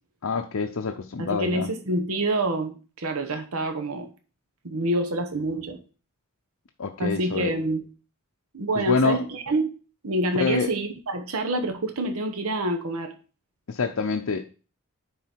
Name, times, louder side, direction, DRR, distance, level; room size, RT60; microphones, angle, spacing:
voice 1, 0.2-1.7 6.8-7.5 8.8-9.2 10.3-10.7 13.7-14.4, left 4 dB, 70° left, 3 dB, 0.6 m, -26 dB
voice 2, 1.2-4.1 4.6-5.8 7.0-7.8 8.5-9.7 10.0-13.1, right 1 dB, 75° right, 6 dB, 1.0 m, -27 dB
9.4 x 4.0 x 4.5 m, 0.36 s
head